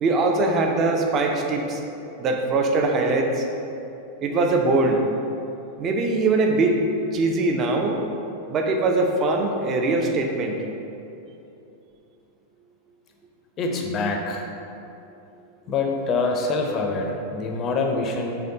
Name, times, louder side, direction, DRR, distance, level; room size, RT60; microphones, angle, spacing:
voice 1, 0.0-1.8 2.2-3.5 4.2-5.0 5.8-6.8 7.1-8.0 8.5-10.6, right 3 dB, 30° right, 2 dB, 0.4 m, -22 dB
voice 2, 13.6-14.5 15.7-18.4, left 3 dB, 30° left, 2 dB, 0.4 m, -25 dB
3.9 x 3.1 x 2.8 m, 2.8 s
figure-of-eight pair, 90°, 0 cm